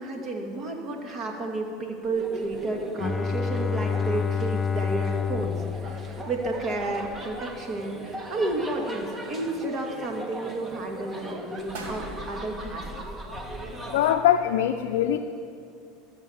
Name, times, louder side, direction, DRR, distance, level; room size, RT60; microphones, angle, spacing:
voice 1, 0.0-12.9, right 2 dB, 40° right, 2 dB, 2.3 m, -32 dB
sound 1, 2.0-14.2, right 1 dB, 25° right, 1.5 m, -39 dB
Bowed string instrument, 3.0-6.9, left 6 dB, 20° left, 0.4 m, -29 dB
sound 2, 8.0-8.8 9.2-10.0 10.6-10.9 11.4-11.5 11.7-13.6 13.9-14.0, right 2 dB, 75° right, 2.0 m, -44 dB
voice 2, 13.9-15.2, left 11 dB, 75° left, 4 dB, 0.5 m, -22 dB
13.0 x 7.3 x 7.2 m, 2.5 s
hypercardioid pair, 95°, 0 cm